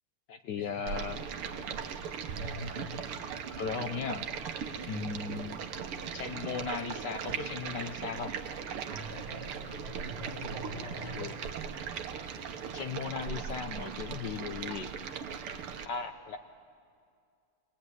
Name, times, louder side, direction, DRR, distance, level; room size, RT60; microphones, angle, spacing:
voice 1, 0.3-1.2 3.6-4.2 4.9-5.7 6.1-8.3 11.0-11.3 12.7-14.9 15.8-16.4, left 5 dB, 65° left, 8 dB, 1.2 m, -37 dB
Stream, 0.9-15.9, right 7 dB, 80° right, 1.9 m, -39 dB
voice 2, 2.3-2.8 4.9-5.1 8.9-11.2, equal, 10° right, -6 dB, 3.0 m, -43 dB
22.5 x 18.0 x 9.5 m, 2.3 s
omnidirectional pair, 2.4 m